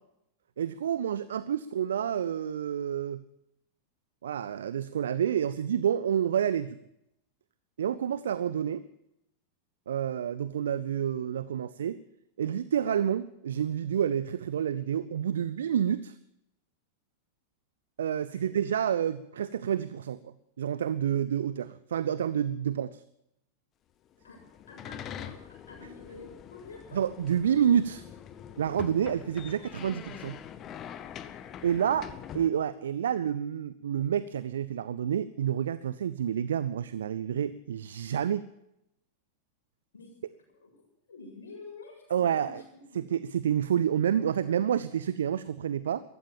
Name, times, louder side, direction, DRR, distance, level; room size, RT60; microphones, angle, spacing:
voice 1, 0.6-3.2 4.2-6.8 7.8-8.8 9.9-12.0 12.4-16.1 18.0-23.0 26.9-28.0 28.6-30.4 31.6-32.1 32.3-38.5 42.1-42.6 42.9-46.0, right 9 dB, 65° right, 17 dB, 0.5 m, -29 dB
sound 1, 24.2-32.5, left 9 dB, 30° left, 1.0 m, -44 dB
voice 2, 24.7-27.0 31.7-32.1 39.9-40.1 40.6-40.7 41.1-42.6 42.9-43.0, left 3 dB, 70° left, 0 dB, 7.2 m, -48 dB
15.0 x 13.5 x 7.2 m, 0.82 s
figure-of-eight pair, 90°, 0 cm